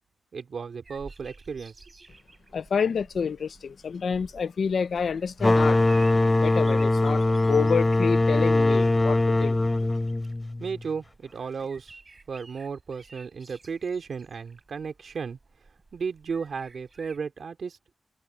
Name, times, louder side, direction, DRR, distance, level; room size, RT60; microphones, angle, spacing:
voice 1, 0.3-1.7 10.6-11.9 12.3-15.4 15.9-17.9, right 5 dB, 80° right, 2.9 m, -34 dB
sound 1, 0.8-17.2, right 3 dB, 35° right, 6.6 m, -52 dB
voice 2, 2.5-5.8 6.4-9.6, left 6 dB, 85° left, 0.6 m, -28 dB
sound 2, 5.4-10.8, left 2 dB, 20° left, 0.5 m, -22 dB
wide cardioid pair, 120°, 0 cm